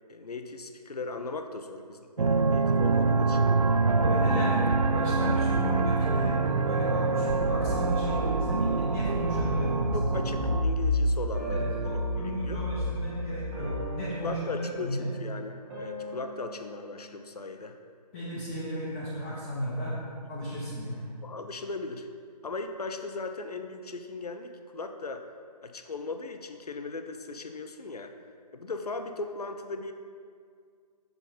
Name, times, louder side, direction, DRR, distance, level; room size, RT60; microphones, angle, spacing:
voice 1, 0.1-3.5 4.1-4.5 9.9-12.6 14.2-17.8 21.2-22.1 22.4-25.2 25.6-28.1 28.5-29.9, left 3 dB, 65° left, 6 dB, 0.6 m, -38 dB
sound 1, 2.2-10.6, right 4 dB, 60° right, 0.5 m, -25 dB
voice 2, 3.9-10.1 11.5-15.1 18.1-20.0 20.3-21.1, equal, 15° left, -8 dB, 0.8 m, -34 dB
sound 2, 7.1-13.8, left 1 dB, 80° right, 1.5 m, -33 dB
sound 3, 11.3-17.5, right 3 dB, 20° right, 1.7 m, -42 dB
6.9 x 5.8 x 4.1 m, 2.1 s
figure-of-eight pair, 145°, 21 cm